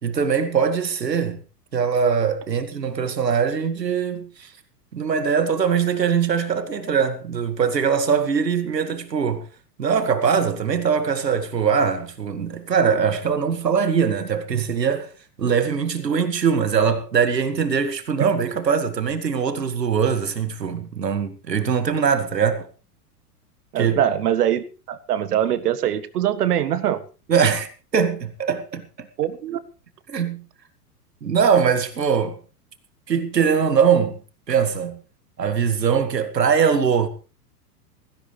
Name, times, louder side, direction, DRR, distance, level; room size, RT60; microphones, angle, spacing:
voice 1, 0.0-1.4 1.7-4.5 4.9-9.5 9.8-15.1 15.4-22.7 23.8-24.0 27.3-27.7 27.9-29.1 30.1-30.4 31.2-32.4 33.1-34.2 34.5-35.0 35.4-37.1, right 6 dB, 90° right, 2.1 m, -21 dB
voice 2, 23.7-27.0 29.2-29.6, right 10 dB, 70° right, 1.7 m, -23 dB
17.0 x 16.5 x 3.3 m
hypercardioid pair, 105°, 48 cm